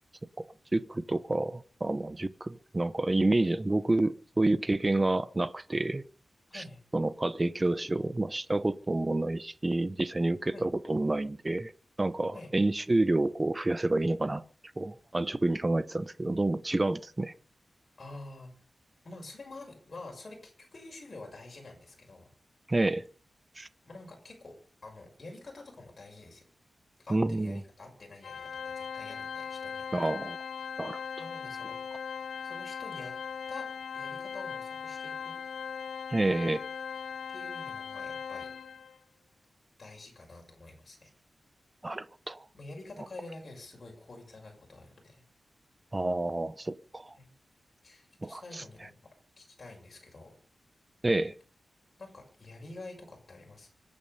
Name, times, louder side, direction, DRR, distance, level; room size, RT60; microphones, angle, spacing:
voice 1, 0.7-6.0 6.5-6.6 6.9-11.7 12.0-14.4 14.8-17.3 22.7-23.1 23.6-23.7 27.1-27.6 29.9-30.4 30.8-31.0 36.1-36.6 41.8-42.4 45.9-47.1 48.2-48.6 51.0-51.3, right 2 dB, 20° right, 0.8 m, -29 dB
voice 2, 6.5-6.8 10.5-10.7 12.3-12.5 18.0-18.5 19.0-22.3 23.8-24.6 24.8-26.4 27.0-30.1 31.2-31.8 32.4-33.1 33.5-33.7 33.9-35.4 37.3-38.5 39.8-41.1 42.5-45.2 47.1-47.3 47.8-49.0 49.4-50.3 52.0-53.7, left 2 dB, 35° left, 6.5 m, -48 dB
Organ, 28.2-39.0, left 6 dB, 85° left, 0.7 m, -39 dB
25.5 x 9.0 x 5.5 m
wide cardioid pair, 155°, 0 cm